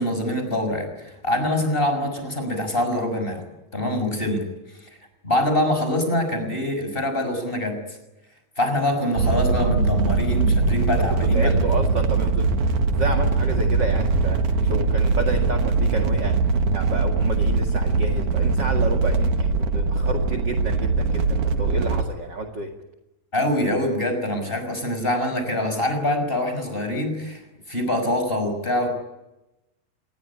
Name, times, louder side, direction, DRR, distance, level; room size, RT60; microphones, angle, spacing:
voice 1, 0.0-3.4 3.7-4.4 4.7-5.0 5.2-7.8 8.6-11.6 23.3-27.4 27.7-28.9, left 1 dB, 15° left, 7 dB, 6.0 m, -24 dB
sound 1, 9.2-22.0, right 3 dB, 65° right, 3.0 m, -21 dB
voice 2, 11.2-12.5 12.9-14.4 14.7-16.4 16.7-22.7, right 3 dB, 35° right, 4 dB, 2.3 m, -30 dB
26.5 x 21.0 x 9.9 m, 0.98 s
omnidirectional pair, 3.9 m